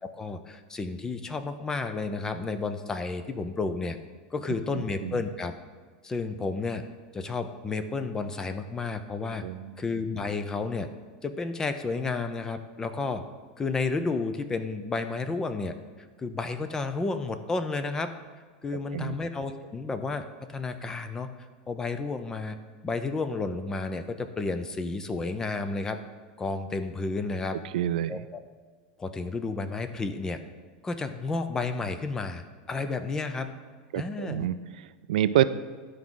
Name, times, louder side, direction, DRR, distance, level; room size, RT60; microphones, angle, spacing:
voice 1, 0.0-4.0 4.3-5.5 6.0-6.9 7.1-9.4 9.8-10.9 11.2-13.2 13.6-15.7 16.2-18.1 18.6-21.3 21.7-22.6 22.8-26.0 26.4-27.6 28.1-28.4 29.0-30.4 30.8-33.5 34.0-34.5, left 3 dB, 15° left, 9 dB, 0.5 m, -31 dB
voice 2, 4.7-5.2 9.4-9.7 18.9-19.2 27.7-28.2 33.9-35.4, right 12 dB, 80° right, 14 dB, 0.4 m, -28 dB
11.5 x 4.7 x 3.8 m, 1.5 s
supercardioid pair, 150°, 4 cm